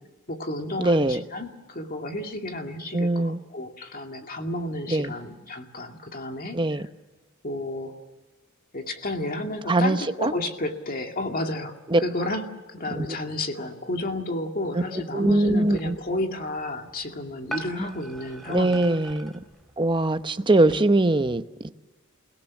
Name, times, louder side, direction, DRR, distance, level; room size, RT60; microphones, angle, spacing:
voice 1, 0.3-6.8 7.4-7.9 8.7-19.0, left 1 dB, 45° left, 4 dB, 2.3 m, -32 dB
voice 2, 0.8-1.2 2.9-3.4 4.9-5.1 6.5-6.8 9.7-10.3 11.9-12.0 12.9-13.1 15.1-15.9 17.8-18.0 18.5-19.3 19.8-21.7, right 2 dB, 25° right, 10 dB, 0.8 m, -22 dB
sound 1, 15.6-20.8, right 2 dB, ahead, 3.1 m, -43 dB
29.0 x 17.5 x 7.2 m, 1.2 s
head